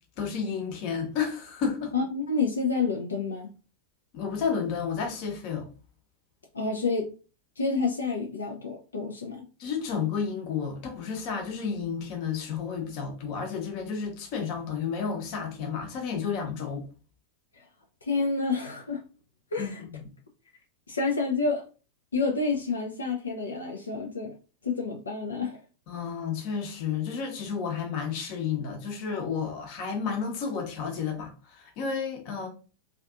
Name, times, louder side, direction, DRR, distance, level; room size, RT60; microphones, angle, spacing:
voice 1, 0.2-1.9 4.1-5.7 9.6-16.8 19.6-19.7 20.0-20.1 25.9-32.5, left 6 dB, 45° left, 0.8 m, -31 dB
voice 2, 1.9-3.5 6.5-7.1 7.6-9.4 17.5-17.6 18.0-19.0 19.5-19.8 20.9-21.6 22.1-24.3 24.6-25.6, left 4 dB, 70° left, 0.4 m, -29 dB
2.5 x 2.4 x 2.4 m
figure-of-eight pair, 90°, 0 cm